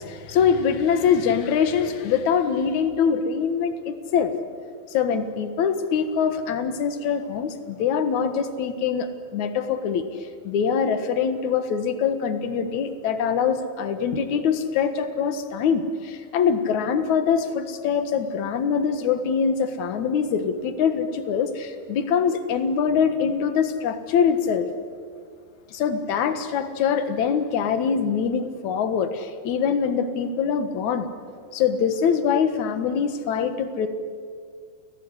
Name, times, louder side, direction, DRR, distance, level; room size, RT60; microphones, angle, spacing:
voice 1, 0.0-4.3 4.9-24.7 25.7-31.1 31.5-33.9, left 7 dB, 60° left, 9 dB, 2.8 m, -23 dB
29.0 x 19.0 x 9.9 m, 2.1 s
omnidirectional pair, 3.9 m